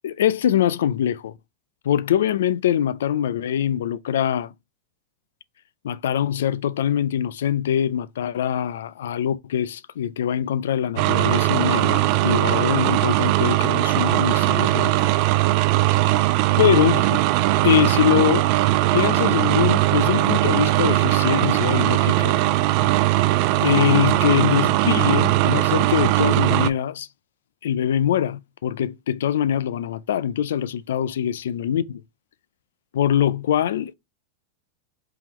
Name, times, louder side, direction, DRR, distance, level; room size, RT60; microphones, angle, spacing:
voice 1, 0.0-1.3 1.8-4.5 5.8-15.1 16.6-17.2 17.6-18.5 18.9-22.4 23.2-23.3 23.6-27.1 27.6-32.0 32.9-33.9, left 10 dB, 85° left, 0.3 m, -23 dB
sound 1, 11.0-26.7, right 16 dB, 50° right, 0.3 m, -19 dB
3.8 x 2.9 x 3.0 m
supercardioid pair, 135°, 0 cm